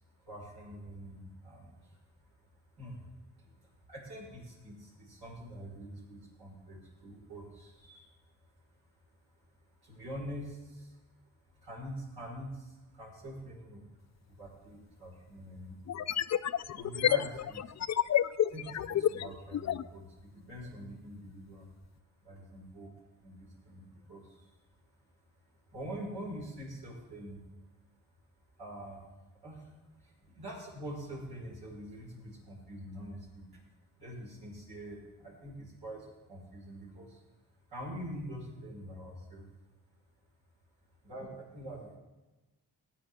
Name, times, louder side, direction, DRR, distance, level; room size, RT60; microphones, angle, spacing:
voice 1, 0.2-2.0 2.4-2.5 2.8-3.0 3.4-8.1 8.4-8.5 9.4-9.5 9.8-11.0 11.5-13.8 14.3-15.8 16.7-17.7 18.5-21.7 22.2-22.9 23.2-24.5 25.7-27.4 28.6-29.1 29.4-33.6 34.0-37.2 37.7-39.4 41.0-42.0, right 1 dB, 85° right, -4 dB, 5.0 m, -45 dB
sound 1, 14.5-14.6 15.9-19.9, left 10 dB, 50° left, 0.4 m, -30 dB
17.5 x 9.0 x 3.6 m, 1.1 s
cardioid pair, 70°, 37 cm